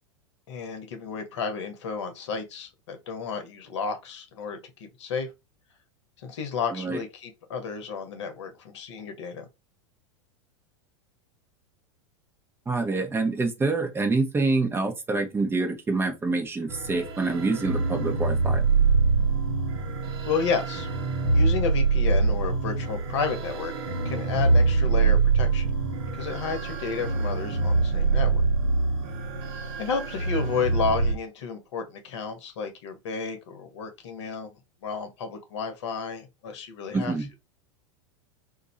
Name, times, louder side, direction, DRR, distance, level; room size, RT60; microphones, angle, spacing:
voice 1, 0.5-5.3 6.2-9.5 20.2-20.9 21.3-23.7 24.0-25.7 26.1-28.4 29.8-34.5 34.8-37.1, left 5 dB, 65° left, 1.0 m, -32 dB
voice 2, 12.7-18.7 36.9-37.3, right 3 dB, 15° right, 1.1 m, -26 dB
sound 1, 16.7-31.1, right 4 dB, 60° right, 1.0 m, -24 dB
2.6 x 2.6 x 4.1 m
hypercardioid pair, 95°, 16 cm